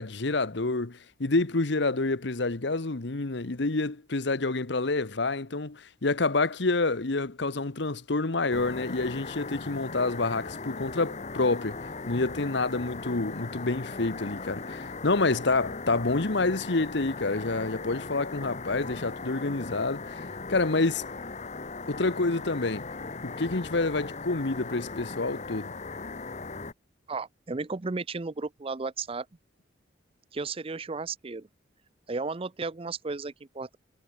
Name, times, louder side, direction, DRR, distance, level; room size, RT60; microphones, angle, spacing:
voice 1, 0.0-20.2 20.5-21.0 21.9-22.9 23.2-25.8, left 3 dB, 65° left, 1.1 m, -28 dB
sound 1, 8.5-26.7, left 3 dB, 35° left, 1.2 m, -38 dB
voice 2, 27.1-29.3 30.3-31.5 32.1-33.8, right 4 dB, 30° right, 0.6 m, -34 dB
head